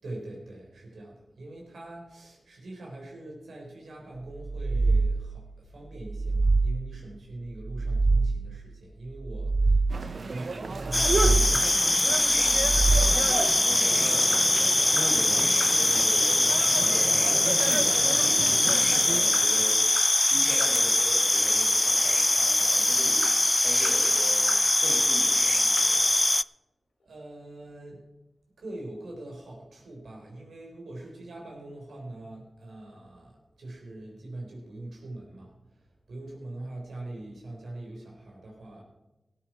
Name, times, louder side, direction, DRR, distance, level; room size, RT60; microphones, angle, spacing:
voice 1, 0.0-10.0 10.2-11.9 12.4-12.5 27.0-28.1 28.6-38.8, right 2 dB, 90° right, 0 dB, 4.1 m, -42 dB
sound 1, 4.4-5.5 6.0-7.1 7.6-8.7 9.2-10.3 10.8-11.8 12.4-13.5, right 3 dB, 45° right, 0.4 m, -25 dB
sound 2, 9.9-19.2, right 3 dB, 65° right, 1.0 m, -33 dB
sound 3, 10.9-26.4, left 2 dB, 30° left, 0.3 m, -23 dB
voice 2, 13.6-14.6 14.9-19.8 20.2-26.1, left 1 dB, 85° left, 1 dB, 3.3 m, -40 dB
17.0 x 9.1 x 4.7 m, 1.0 s
cardioid pair, 50°, 0 cm